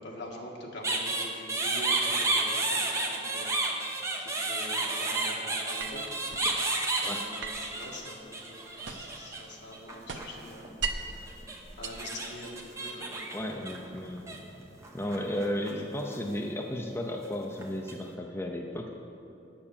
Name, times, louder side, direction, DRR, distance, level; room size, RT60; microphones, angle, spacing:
voice 1, 0.0-6.6 7.0-13.2 14.0-14.6, left 1 dB, 60° left, -1 dB, 1.7 m, -45 dB
sound 1, 0.8-9.4 9.7-10.7 11.3-14.4 14.8-15.7 16.0-16.3 17.2-17.9, right 2 dB, 15° right, 0.9 m, -31 dB
sound 2, 5.8-6.5 7.4-9.3 9.6-11.2 11.7-12.7, right 5 dB, 70° right, 0.8 m, -39 dB
voice 2, 13.3-14.3 14.9-18.9, left 1 dB, 15° left, 1 dB, 0.5 m, -34 dB
9.4 x 6.8 x 7.2 m, 2.9 s
head